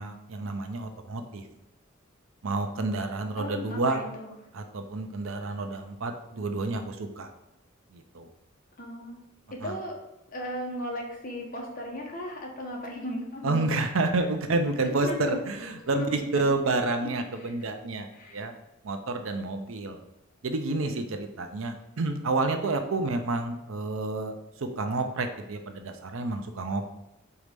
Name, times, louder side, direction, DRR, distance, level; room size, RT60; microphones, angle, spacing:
voice 1, 0.0-1.4 2.4-4.0 4.5-7.3 7.9-8.3 9.6-9.8 13.4-18.5 18.8-20.0 20.4-24.4 24.8-26.8, right 2 dB, 75° right, 6 dB, 0.7 m, -29 dB
voice 2, 3.4-4.3 8.8-9.2 9.5-10.0 10.3-13.7 14.8-16.4 16.8-16.9 17.4-17.5 18.1-18.4 23.0-23.1, left 1 dB, 40° left, -1 dB, 1.3 m, -36 dB
4.8 x 4.2 x 5.2 m, 0.89 s
head